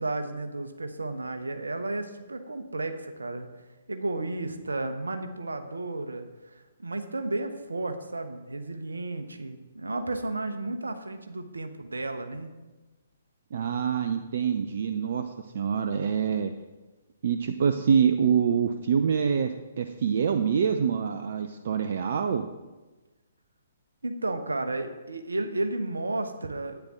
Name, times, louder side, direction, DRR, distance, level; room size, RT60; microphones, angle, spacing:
voice 1, 0.0-3.5 3.9-12.5 24.0-26.8, right 2 dB, 75° right, 7 dB, 1.0 m, -33 dB
voice 2, 13.5-16.5 17.2-22.4, right 7 dB, 50° right, 8 dB, 0.5 m, -25 dB
10.5 x 8.9 x 3.7 m, 1.2 s
figure-of-eight pair, 125°, 0 cm